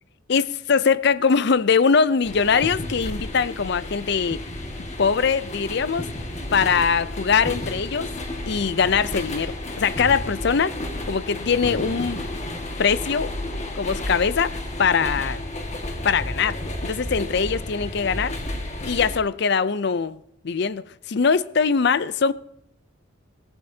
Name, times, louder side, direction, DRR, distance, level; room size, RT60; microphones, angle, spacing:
voice 1, 0.3-4.4 5.0-6.1 6.5-8.1 8.5-10.7 11.1-12.2 12.8-13.3 13.8-14.5 14.8-15.4 16.0-16.6 16.8-18.3 18.8-20.2 20.4-22.3, left 5 dB, 55° left, 0.5 m, -22 dB
sound 1, 2.2-19.2, left 1 dB, 35° left, 1.8 m, -32 dB
17.5 x 14.5 x 2.8 m
head